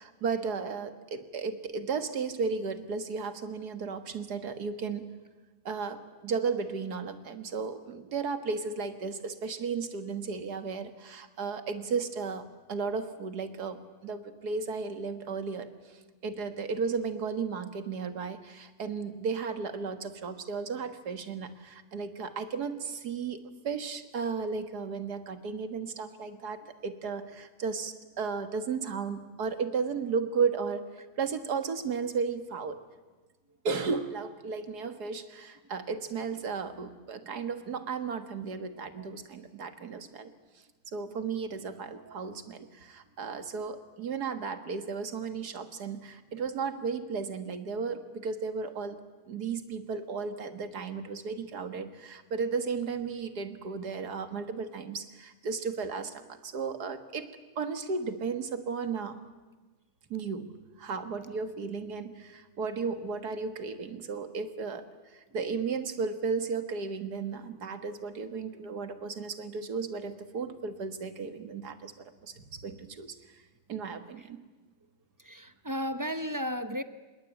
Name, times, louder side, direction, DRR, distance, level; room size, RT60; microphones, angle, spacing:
voice 1, 0.0-5.1 5.7-32.8 33.6-40.3 40.9-49.0 49.3-57.3 57.6-59.2 60.1-64.9 65.1-73.2 73.7-74.4, right 5 dB, 65° right, 10 dB, 2.2 m, -34 dB
voice 2, 40.0-40.3 41.9-42.2 42.6-42.7 43.3-43.4 74.2-74.3 75.2-76.8, equal, 30° right, 11 dB, 0.3 m, -36 dB
26.0 x 21.0 x 9.1 m, 1.2 s
omnidirectional pair, 1.8 m